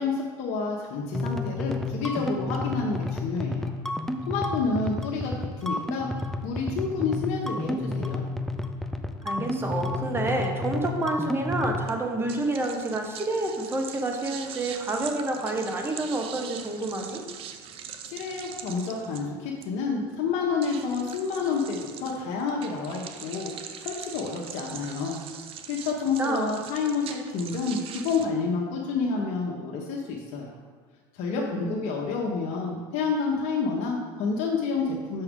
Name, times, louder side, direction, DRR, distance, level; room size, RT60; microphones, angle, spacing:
voice 1, 0.0-3.7 4.3-6.1 6.4-8.2 18.0-23.5 23.8-25.2 25.7-30.5 31.1-35.2, left 4 dB, 65° left, -2 dB, 1.0 m, -29 dB
sound 1, 1.1-11.8, left 2 dB, 5° left, 0.4 m, -31 dB
voice 2, 9.2-17.2 26.2-26.5 31.3-31.9, right 2 dB, 20° right, 3 dB, 1.1 m, -29 dB
sound 2, 11.9-28.3, right 8 dB, 50° right, 0.6 m, -42 dB
6.7 x 5.9 x 3.7 m, 1.5 s
supercardioid pair, 105°, 13 cm